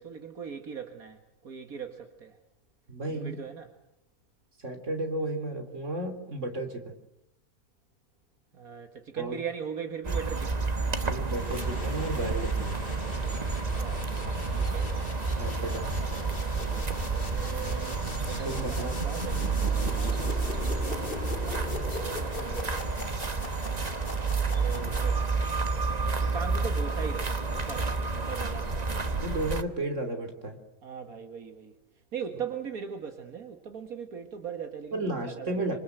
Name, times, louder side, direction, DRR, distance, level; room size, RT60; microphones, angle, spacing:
voice 1, 0.0-2.4 3.1-3.7 8.5-10.6 13.8-14.9 16.6-22.9 24.6-25.4 26.2-29.2 30.8-31.7 32.1-35.7, right 7 dB, 80° right, 6 dB, 2.1 m, -40 dB
voice 2, 2.9-3.4 4.6-7.0 9.2-9.4 11.0-12.8 15.4-15.9 18.5-18.9 29.2-30.6 34.9-35.8, right 2 dB, 55° right, 7 dB, 3.5 m, -33 dB
sound 1, 10.0-29.6, right 4 dB, 30° right, 1.4 m, -30 dB
sound 2, 11.2-25.5, left 3 dB, 40° left, 2.6 m, -41 dB
27.0 x 26.0 x 7.9 m, 0.83 s
omnidirectional pair, 1.5 m